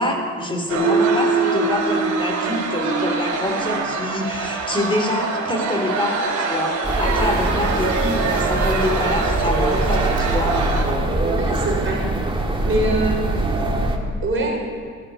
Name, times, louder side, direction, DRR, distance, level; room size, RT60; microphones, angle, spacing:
voice 1, 0.0-10.7, left 1 dB, 15° left, 3 dB, 3.3 m, -25 dB
sound 1, 0.7-10.8, right 4 dB, 80° right, 3.4 m, -24 dB
sound 2, 6.8-14.0, right 2 dB, 15° right, 2.0 m, -22 dB
voice 2, 11.2-12.1 12.6-13.4 14.2-14.8, right 2 dB, 45° right, -1 dB, 4.2 m, -24 dB
16.5 x 12.5 x 5.4 m, 2.2 s
cardioid pair, 90°, 30 cm